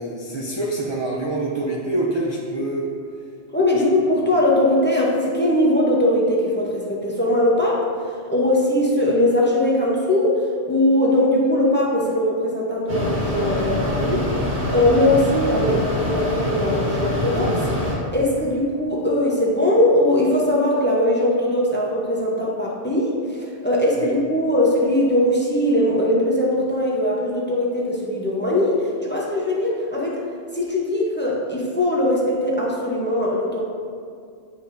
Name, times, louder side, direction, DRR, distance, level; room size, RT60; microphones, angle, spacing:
voice 1, 0.0-2.9 3.7-3.8 24.0-24.1, right 2 dB, 35° right, -3 dB, 0.5 m, -26 dB
voice 2, 3.5-7.9 8.3-10.4 10.7-14.3 14.7-17.8 18.1-30.2 30.5-33.6, left 1 dB, 10° left, -4 dB, 0.7 m, -20 dB
Mechanisms, 12.9-17.9, left 1 dB, 65° right, 1.8 m, -24 dB
8.3 x 5.2 x 2.6 m, 2.2 s
omnidirectional pair, 1.2 m